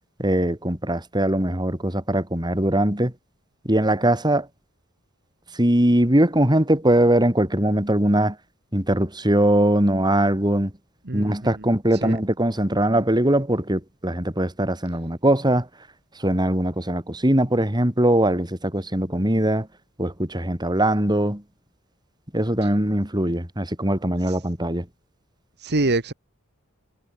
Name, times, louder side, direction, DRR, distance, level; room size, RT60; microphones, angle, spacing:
voice 1, 0.2-3.1 3.6-4.5 5.5-8.4 8.7-10.7 11.1-15.7 16.2-19.7 20.0-21.4 22.3-24.9, right 1 dB, 20° right, 4.2 m, -21 dB
voice 2, 11.1-11.5 12.0-12.2 24.3-24.4 25.6-26.1, right 2 dB, 55° right, 1.7 m, -25 dB
head